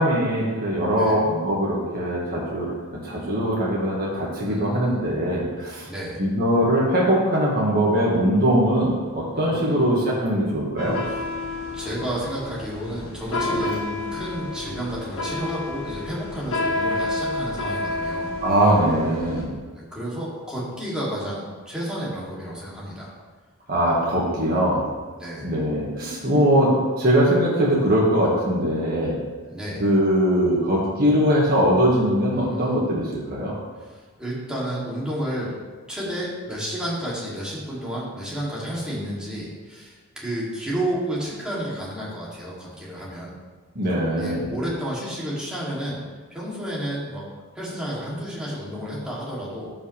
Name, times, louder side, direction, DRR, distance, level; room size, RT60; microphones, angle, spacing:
voice 1, 0.0-2.7 3.0-5.9 6.2-11.0 13.5-13.6 18.4-19.5 23.7-24.8 25.4-26.7 27.0-29.2 29.8-33.6 43.8-44.5, equal, 45° right, -6 dB, 1.8 m, -21 dB
voice 2, 4.4-5.0 5.8-6.2 9.3-9.9 11.1-11.2 11.7-18.3 19.7-23.1 25.2-25.5 29.5-29.8 32.3-32.8 33.8-35.5 35.9-43.3 44.2-46.0 46.3-47.2 47.5-49.7, equal, 5° right, -7 dB, 2.7 m, -31 dB
sound 1, 10.8-19.5, left 2 dB, 65° left, 1.4 m, -30 dB
14.0 x 5.7 x 3.4 m, 1.4 s
head